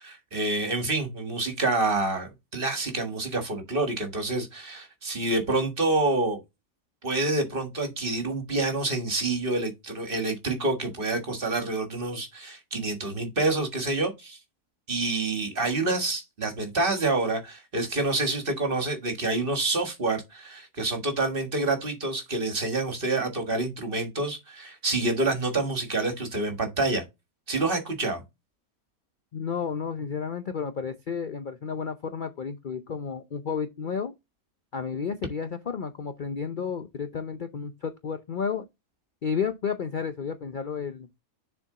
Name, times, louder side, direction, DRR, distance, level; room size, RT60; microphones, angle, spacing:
voice 1, 0.0-6.4 7.0-14.4 14.9-27.0 27.5-28.2, right 2 dB, 40° right, 1.7 m, -27 dB
voice 2, 29.3-34.1 34.7-38.6 39.2-41.1, left 6 dB, 50° left, 0.6 m, -32 dB
7.0 x 4.5 x 3.7 m
omnidirectional pair, 1.5 m